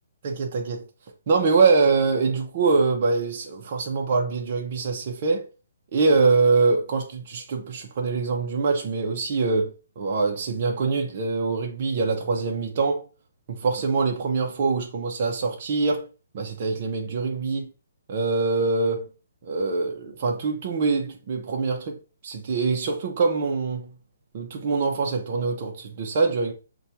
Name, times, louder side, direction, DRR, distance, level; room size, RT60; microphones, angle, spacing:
voice 1, 0.2-0.8 1.3-5.5 5.9-13.0 13.5-16.1 16.3-17.7 18.1-19.1 19.4-22.0 22.2-23.9 24.3-26.5, right 4 dB, 40° right, 0.6 m, -24 dB
5.8 x 2.3 x 2.7 m
hypercardioid pair, 165°, 0 cm